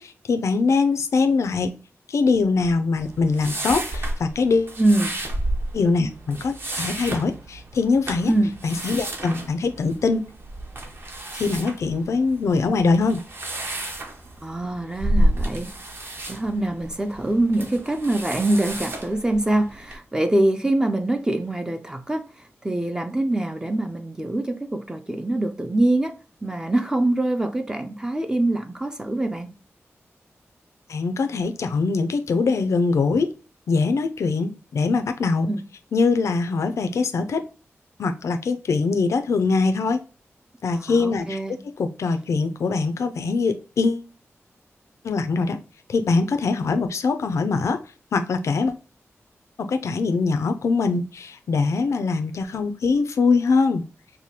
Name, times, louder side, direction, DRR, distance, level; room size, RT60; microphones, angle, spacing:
voice 1, 0.0-1.8 2.1-4.8 5.7-8.3 8.6-10.3 11.3-13.2 30.9-33.3 33.7-35.5 35.9-37.5 38.0-40.0 40.6-44.1 45.0-45.6 45.9-47.8 48.1-48.8 49.6-53.8, left 4 dB, 85° left, 0.4 m, -22 dB
sound 1, 3.0-20.0, right 1 dB, 50° right, 0.8 m, -31 dB
voice 2, 4.8-5.2 8.3-8.5 14.4-15.7 16.3-22.3 22.6-26.1 26.4-29.5 35.5-35.6 40.7-41.5, right 1 dB, 15° right, 0.3 m, -24 dB
4.8 x 2.2 x 2.8 m
wide cardioid pair, 145°, 5 cm